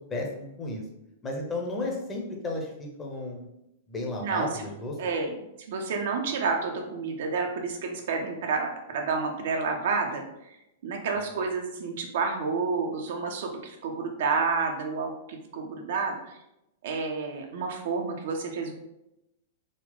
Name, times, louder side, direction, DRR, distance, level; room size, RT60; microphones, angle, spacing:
voice 1, 0.1-0.8 1.2-3.5 3.9-4.9, left 2 dB, 20° left, 0 dB, 0.9 m, -33 dB
voice 2, 4.2-4.7 5.0-5.4 5.7-10.5 10.8-16.4 16.8-18.7, right 4 dB, 55° right, 2 dB, 0.6 m, -30 dB
3.9 x 2.4 x 3.6 m, 0.85 s
figure-of-eight pair, 100°, 0 cm